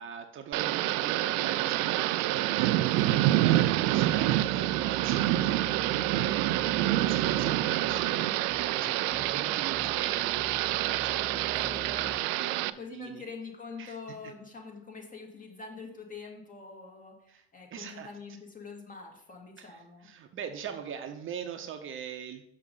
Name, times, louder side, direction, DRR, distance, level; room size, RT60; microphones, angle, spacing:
voice 1, 0.0-3.1 3.4-13.2 13.8-14.0 14.2-14.3 17.3-17.4 17.7-18.1 19.6-22.4, right 8 dB, 40° right, 6 dB, 0.9 m, -41 dB
Thunder / Rain, 0.5-12.7, right 15 dB, 65° right, 0.4 m, -27 dB
voice 2, 3.0-3.3 8.7-9.3 11.7-11.9 12.8-20.1, left 4 dB, 25° left, 1 dB, 2.3 m, -45 dB
sound 1, 3.0-12.2, right 4 dB, 15° right, 0.6 m, -44 dB
6.5 x 5.4 x 5.4 m, 0.75 s
hypercardioid pair, 80°, 30 cm